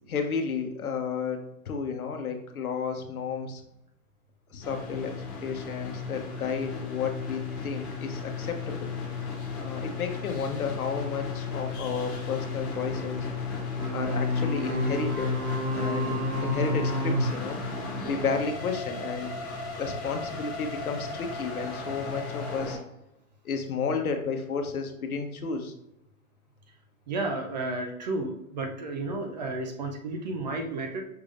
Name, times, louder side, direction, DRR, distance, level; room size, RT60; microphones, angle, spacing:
voice 1, 0.1-1.4 1.7-3.6 4.5-5.2 5.4-8.9 9.6-13.3 13.9-15.3 15.7-17.6 18.0-19.3 19.8-22.8 23.4-25.7, left 5 dB, 80° left, 4 dB, 1.0 m, -32 dB
sound 1, 4.6-22.8, left 4 dB, 15° left, 0.5 m, -35 dB
sound 2, 13.8-18.2, equal, 85° right, 1.1 m, -30 dB
voice 2, 27.1-31.0, right 2 dB, 30° right, 3 dB, 0.5 m, -32 dB
5.6 x 3.4 x 2.5 m, 0.84 s
hypercardioid pair, 145°, 43 cm